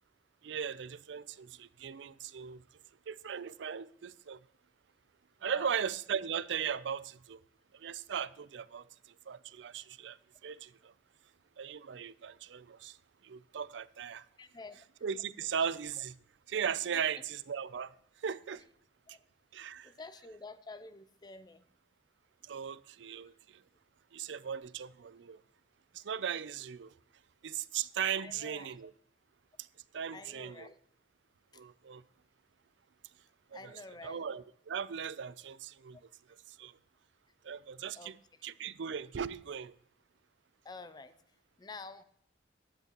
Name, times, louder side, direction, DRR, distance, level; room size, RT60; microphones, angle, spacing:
voice 1, 0.4-2.6 3.1-4.4 5.4-7.4 7.7-10.9 11.6-13.0 13.2-14.3 15.0-16.2 16.5-18.7 19.5-19.9 22.4-23.6 24.1-25.4 25.9-27.0 27.4-28.9 29.6-29.7 29.9-30.7 31.5-32.0 33.5-36.0 36.5-36.8 37.4-38.2 38.4-39.7, right 7 dB, 70° right, 0.4 m, -38 dB
voice 2, 5.4-5.7 14.4-14.8 16.9-17.0 19.1-19.2 19.8-21.6 28.2-28.7 30.1-30.7 33.5-34.2 38.0-38.1 40.6-41.1 41.6-42.0, left 3 dB, 20° left, 0.4 m, -49 dB
14.5 x 11.0 x 3.0 m
head